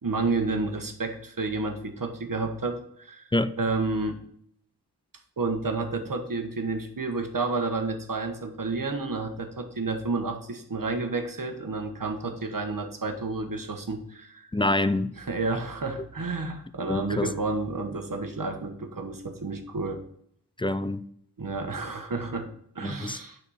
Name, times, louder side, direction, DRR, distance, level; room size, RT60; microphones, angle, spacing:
voice 1, 0.0-3.3 3.6-4.2 5.4-14.5 15.2-20.0 21.4-23.4, right 3 dB, 55° right, 1.3 m, -30 dB
voice 2, 14.5-15.1 16.9-17.3 20.6-21.0 22.8-23.2, left 2 dB, 15° left, 0.3 m, -26 dB
9.9 x 4.3 x 4.2 m
wide cardioid pair, 80°, 40 cm